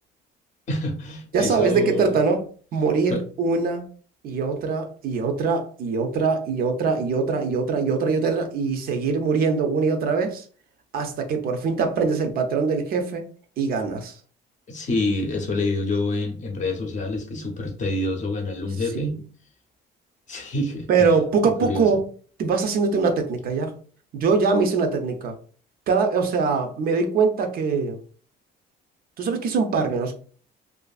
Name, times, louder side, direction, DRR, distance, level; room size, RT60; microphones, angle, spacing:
voice 1, 0.7-2.2 3.1-3.2 14.7-19.2 20.3-21.9, left 2 dB, 40° left, 4 dB, 0.6 m, -27 dB
voice 2, 1.3-3.9 4.2-10.5 10.9-13.3 13.6-14.2 20.9-22.0 22.4-23.7 24.1-25.4 25.9-28.0 29.2-30.2, right 4 dB, 50° right, 5 dB, 0.4 m, -23 dB
2.5 x 2.5 x 2.3 m, 0.42 s
cardioid pair, 150°, 20 cm